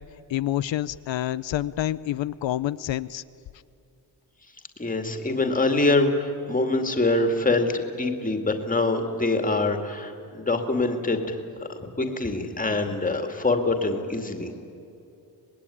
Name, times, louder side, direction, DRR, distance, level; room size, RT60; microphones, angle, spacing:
voice 1, 0.3-3.2, left 13 dB, 90° left, 14 dB, 0.7 m, -28 dB
voice 2, 4.8-11.4 12.0-14.5, left 2 dB, 20° left, 6 dB, 2.3 m, -24 dB
25.5 x 20.5 x 9.9 m, 2.6 s
wide cardioid pair, 175°, 44 cm